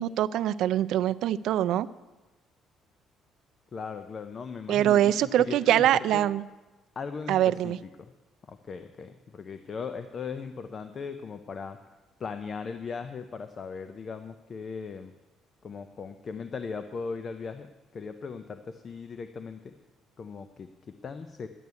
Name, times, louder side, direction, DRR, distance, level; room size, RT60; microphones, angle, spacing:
voice 1, 0.0-1.9 4.7-6.4 7.3-7.8, right 12 dB, 65° right, 14 dB, 0.4 m, -24 dB
voice 2, 3.7-6.3 7.0-7.7 8.0-8.1 8.5-11.8 12.2-15.1 15.6-19.7 20.2-21.5, left 5 dB, 30° left, 9 dB, 0.5 m, -38 dB
11.0 x 8.7 x 9.4 m, 1.1 s
cardioid pair, 175°, 0 cm